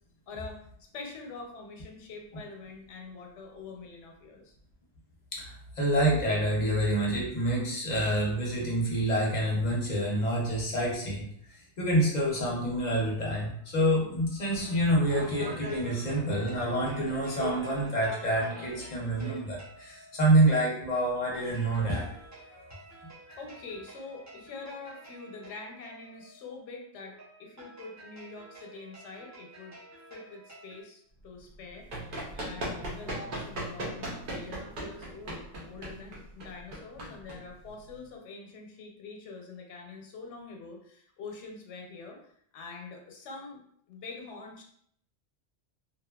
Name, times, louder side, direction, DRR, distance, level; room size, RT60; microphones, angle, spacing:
voice 1, 0.3-4.5 23.4-29.8 30.1-43.6 43.9-44.6, left 3 dB, 90° left, 1 dB, 0.9 m, -45 dB
voice 2, 5.3-22.1 22.5-22.6 23.3-23.4, right 1 dB, 45° left, -3 dB, 0.6 m, -27 dB
sound 1, 14.5-19.4, right 2 dB, 80° right, 1.1 m, -42 dB
sound 2, 15.0-30.8, right 2 dB, 20° right, 0.5 m, -52 dB
Run, 31.5-38.0, right 1 dB, 55° right, 0.7 m, -38 dB
2.7 x 2.2 x 2.2 m, 0.66 s
omnidirectional pair, 1.2 m